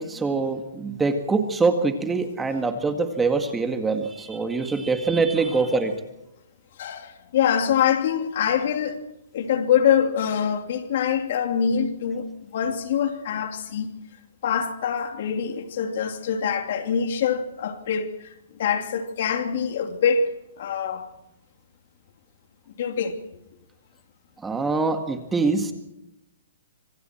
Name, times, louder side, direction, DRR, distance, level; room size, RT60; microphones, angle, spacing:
voice 1, 0.0-5.9 24.4-25.7, right 4 dB, 10° right, 1.9 m, -24 dB
voice 2, 6.8-9.1 9.3-13.9 14.4-18.3 18.6-21.0 22.8-23.2, left 7 dB, 55° left, 2.8 m, -24 dB
26.5 x 25.0 x 4.5 m
hypercardioid pair, 150°, 0 cm